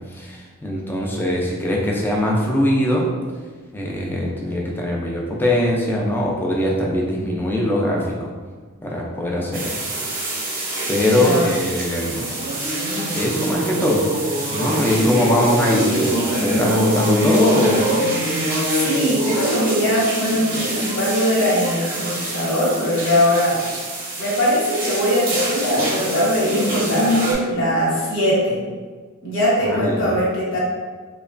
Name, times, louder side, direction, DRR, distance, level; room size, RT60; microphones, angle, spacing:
voice 1, 0.1-3.1 3.7-8.3 8.8-9.8 10.1-10.6 10.9-12.3 13.1-14.1 14.5-17.9 29.7-30.1, left 1 dB, 10° left, -2 dB, 0.3 m, -21 dB
sound 1, 9.5-27.3, right 1 dB, 45° right, 0.6 m, -24 dB
voice 2, 11.0-11.5 14.9-15.4 18.7-23.6 24.2-28.6 29.2-30.6, equal, 60° left, -7 dB, 1.0 m, -21 dB
2.9 x 2.1 x 2.4 m, 1.4 s
head